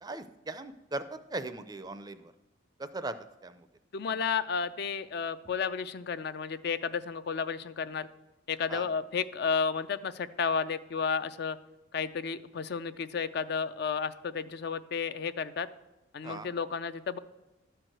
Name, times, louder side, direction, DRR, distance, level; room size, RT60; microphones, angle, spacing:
voice 1, 0.0-2.3 2.8-3.2 3.4-3.7 4.1-4.2 8.7-8.9 16.2-16.5, right 2 dB, 20° right, 11 dB, 0.4 m, -39 dB
voice 2, 3.9-8.1 8.5-11.6 11.9-15.7 16.1-17.2, left 6 dB, 55° left, 13 dB, 0.4 m, -32 dB
12.5 x 4.6 x 7.7 m, 1.0 s
head